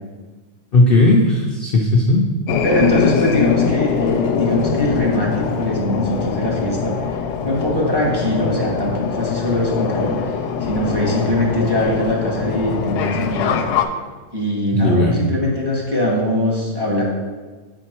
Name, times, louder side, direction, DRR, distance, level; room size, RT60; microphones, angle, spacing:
voice 1, 0.7-2.2 14.7-15.2, left 2 dB, 60° left, 0 dB, 0.6 m, -15 dB
sound 1, 2.5-13.9, left 6 dB, 90° left, 1.2 m, -22 dB
voice 2, 2.6-10.3 10.6-13.6 14.3-17.0, left 1 dB, 15° right, -3 dB, 1.2 m, -21 dB
7.9 x 4.4 x 4.4 m, 1.3 s
omnidirectional pair, 1.7 m